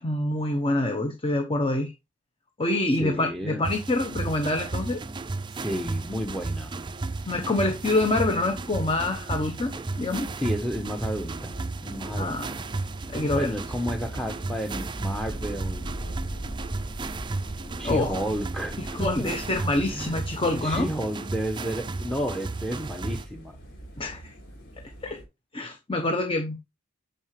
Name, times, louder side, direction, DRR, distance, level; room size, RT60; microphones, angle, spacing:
voice 1, 0.0-1.9 2.6-5.0 7.3-10.3 12.2-12.5 13.1-13.5 17.8-18.1 18.8-20.9 24.0-24.3 25.0-25.2 25.5-26.6, left 2 dB, 25° left, 1.0 m, -26 dB
voice 2, 3.0-3.6 5.5-6.7 10.4-11.6 11.8-12.6 13.3-15.9 17.8-19.3 19.9-20.1 20.5-23.5, equal, 5° left, 1.0 m, -31 dB
sound 1, 3.6-23.3, right 3 dB, 20° right, 0.4 m, -34 dB
sound 2, 6.0-25.2, right 1 dB, 50° left, 4.5 m, -42 dB
9.5 x 6.7 x 3.2 m
head